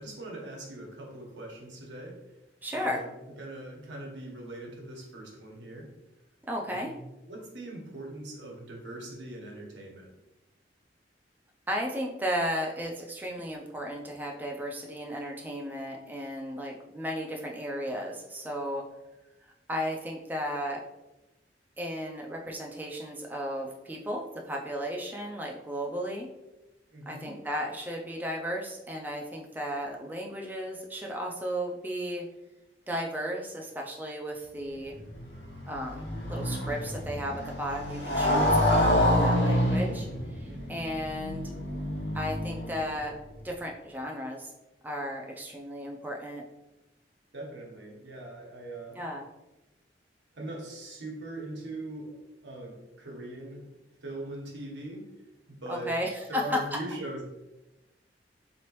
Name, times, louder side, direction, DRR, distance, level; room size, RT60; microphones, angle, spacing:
voice 1, 0.0-2.2 2.7-3.1 3.4-5.9 6.7-10.1 26.9-27.3 40.4-40.8 47.3-49.0 50.3-53.7 54.0-55.0 55.5-55.9 56.3-57.2, right 1 dB, 80° right, -2 dB, 1.1 m, -41 dB
voice 2, 2.6-3.0 6.5-6.9 11.7-18.8 19.7-20.8 21.8-26.3 27.1-32.2 32.9-34.9 35.7-41.5 42.1-43.2 43.4-44.5 44.8-46.4 49.0-49.3 55.7-56.6, equal, 10° right, 0 dB, 0.3 m, -34 dB
Motorcycle, 34.9-43.0, left 1 dB, 80° left, 0.9 m, -27 dB
3.9 x 3.0 x 3.0 m, 1.0 s
head